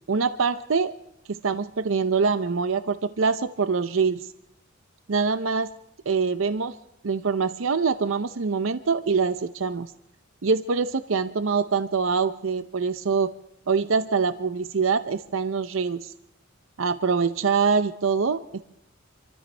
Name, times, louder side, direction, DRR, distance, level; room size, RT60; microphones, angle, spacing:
voice 1, 0.1-0.9 1.3-4.3 5.1-5.7 6.1-6.8 7.0-9.9 10.4-13.3 13.7-16.1 16.8-18.4, right 5 dB, 75° right, 11 dB, 0.7 m, -24 dB
27.5 x 14.0 x 3.4 m, 0.77 s
head